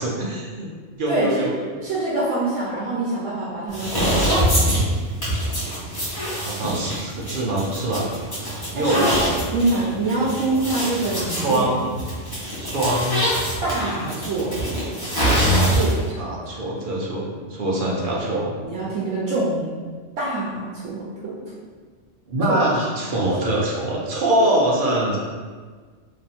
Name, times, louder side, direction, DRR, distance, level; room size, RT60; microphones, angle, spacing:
voice 1, 0.0-1.7 6.3-8.1 8.7-9.2 11.3-11.9 12.6-13.4 14.1-14.2 16.2-18.5 22.3-25.2, right 1 dB, 50° right, -3 dB, 0.7 m, -24 dB
voice 2, 1.1-1.5 1.8-4.8 8.7-9.1 9.5-11.7 13.6-14.8 15.7-16.2 16.5-16.6 18.6-19.8 20.2-21.4 22.5-22.6, right 2 dB, 75° right, -6 dB, 1.1 m, -25 dB
sound 1, 3.7-16.1, equal, 20° left, 1.1 m, -24 dB
3.1 x 2.6 x 4.1 m, 1.5 s
omnidirectional pair, 1.3 m